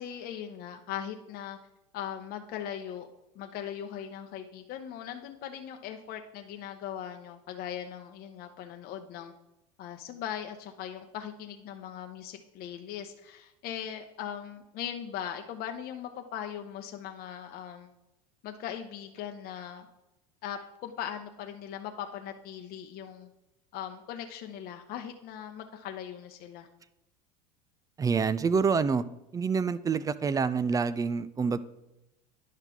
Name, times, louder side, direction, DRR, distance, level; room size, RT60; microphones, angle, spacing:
voice 1, 0.0-1.6 1.9-3.1 3.3-9.3 9.8-17.9 18.4-19.9 20.4-23.3 23.7-26.7, left 9 dB, 45° left, 5 dB, 0.8 m, -39 dB
voice 2, 28.0-29.0 29.3-31.6, right 5 dB, 15° right, 16 dB, 0.3 m, -27 dB
10.5 x 5.6 x 3.6 m, 0.92 s
supercardioid pair, 105°, 21 cm